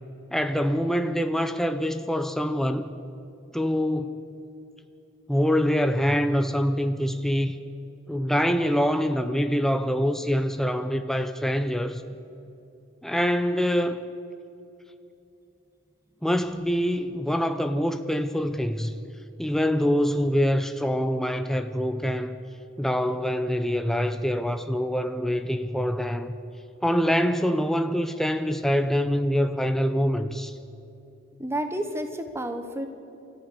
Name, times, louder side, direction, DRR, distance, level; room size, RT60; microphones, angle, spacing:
voice 1, 0.3-2.9 3.5-4.3 5.3-7.6 8.1-12.0 13.0-14.0 16.2-18.9 19.4-22.4 22.8-26.4 26.8-30.5, equal, ahead, 8 dB, 0.7 m, -25 dB
voice 2, 31.4-32.9, right 1 dB, 15° right, 7 dB, 1.2 m, -30 dB
28.5 x 14.0 x 6.9 m, 2.8 s
head